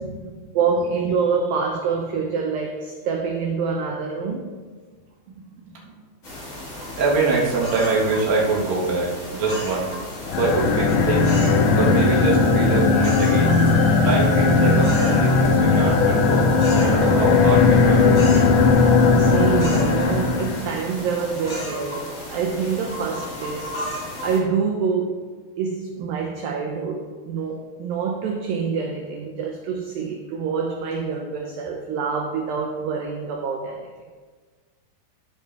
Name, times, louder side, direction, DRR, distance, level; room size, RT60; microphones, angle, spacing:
voice 1, 0.0-0.6 5.3-5.9 7.0-9.9 10.3-11.5 11.8-13.6 14.0-18.1, right 3 dB, 60° right, -4 dB, 2.9 m, -24 dB
voice 2, 0.5-4.5 18.9-23.8 24.2-25.2 25.6-33.9, right 5 dB, 85° right, 2 dB, 2.0 m, -26 dB
sound 1, 6.2-24.4, left 1 dB, 30° left, 1.4 m, -34 dB
sound 2, 10.2-20.7, left 4 dB, 80° left, 2.1 m, -17 dB
14.0 x 5.0 x 3.4 m, 1.4 s
omnidirectional pair, 5.0 m